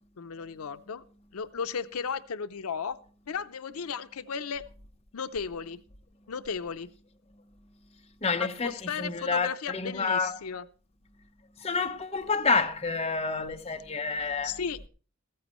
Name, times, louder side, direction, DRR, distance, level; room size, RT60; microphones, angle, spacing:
voice 1, 0.2-1.0 1.3-3.0 3.3-4.7 5.1-5.8 6.3-6.9 8.4-10.6 14.4-14.9, left 6 dB, 85° left, 0.6 m, -35 dB
voice 2, 8.2-10.4 11.6-14.5, left 4 dB, 30° left, 0.9 m, -29 dB
15.0 x 14.0 x 3.1 m
head